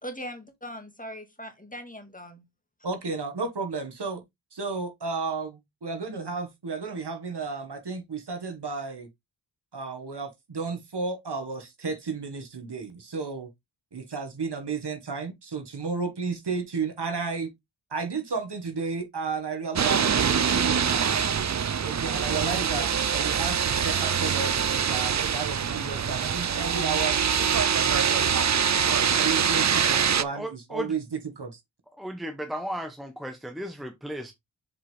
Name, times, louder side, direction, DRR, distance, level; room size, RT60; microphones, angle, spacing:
voice 1, 0.0-2.4, equal, 15° left, 2.1 m, -40 dB
voice 2, 2.8-4.2 4.5-5.5 5.8-9.1 9.7-13.5 13.9-17.5 17.9-21.1 21.8-27.3 27.7-28.4 29.0-31.6, right 4 dB, 60° right, 1.9 m, -33 dB
sound 1, 19.8-30.2, right 7 dB, 40° right, 0.5 m, -24 dB
voice 3, 30.3-30.9 32.0-34.3, right 1 dB, ahead, 1.1 m, -35 dB
7.3 x 4.9 x 3.4 m
cardioid pair, 55°, 46 cm